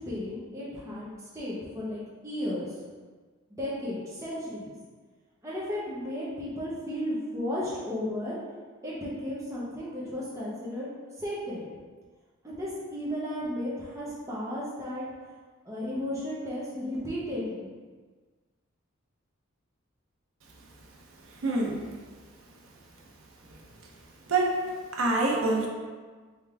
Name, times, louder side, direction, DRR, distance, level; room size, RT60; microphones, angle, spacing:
voice 1, 0.1-1.1 1.3-2.7 3.6-4.7 5.4-8.4 8.8-10.9 11.2-11.7 12.4-15.1 15.6-17.7, left 1 dB, 15° right, -8 dB, 0.7 m, -34 dB
voice 2, 21.4-21.9 24.3-24.6 24.9-25.7, right 2 dB, 85° right, -1 dB, 0.8 m, -25 dB
3.7 x 3.3 x 3.4 m, 1.4 s
head